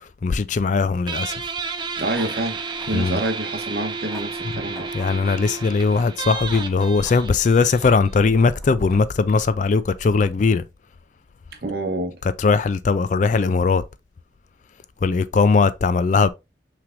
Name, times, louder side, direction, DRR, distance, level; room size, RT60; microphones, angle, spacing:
voice 1, 0.0-1.5 2.9-3.2 4.9-10.6 12.4-13.8 15.0-16.3, left 4 dB, 45° left, 0.3 m, -19 dB
Guitar, 1.1-8.3, right 4 dB, 25° right, 0.5 m, -32 dB
sound 1, 1.6-10.3, equal, ahead, 1.1 m, -43 dB
voice 2, 2.0-4.9 11.6-12.2, right 2 dB, 60° right, 1.0 m, -27 dB
5.9 x 3.3 x 2.5 m
head